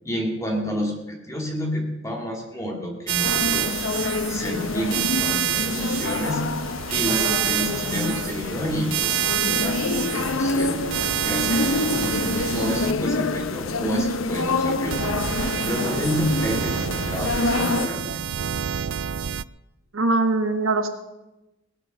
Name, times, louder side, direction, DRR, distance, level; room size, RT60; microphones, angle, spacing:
voice 1, 0.0-3.8 4.3-6.5 6.9-10.8 11.2-15.0 15.3-18.1, equal, 15° left, 0 dB, 2.4 m, -29 dB
sound 1, 3.1-12.9 14.9-19.4, right 10 dB, 70° right, 0.4 m, -28 dB
sound 2, 3.2-17.9, left 3 dB, 85° left, 0.9 m, -27 dB
voice 2, 19.9-20.9, right 2 dB, 85° right, 5 dB, 1.8 m, -22 dB
19.0 x 9.4 x 6.7 m, 0.98 s
head